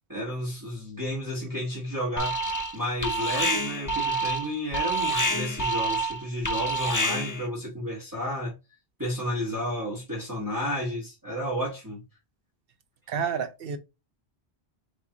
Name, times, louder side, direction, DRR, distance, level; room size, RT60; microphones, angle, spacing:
voice 1, 0.1-2.4 2.7-8.5 9.0-12.0, equal, 20° right, 1.5 m, -32 dB
Alarm, 2.2-2.8 3.0-7.5, right 1 dB, 25° left, 0.5 m, -27 dB
voice 2, 13.1-13.8, right 7 dB, 65° right, 0.9 m, -29 dB
4.4 x 3.0 x 3.7 m
omnidirectional pair, 1.1 m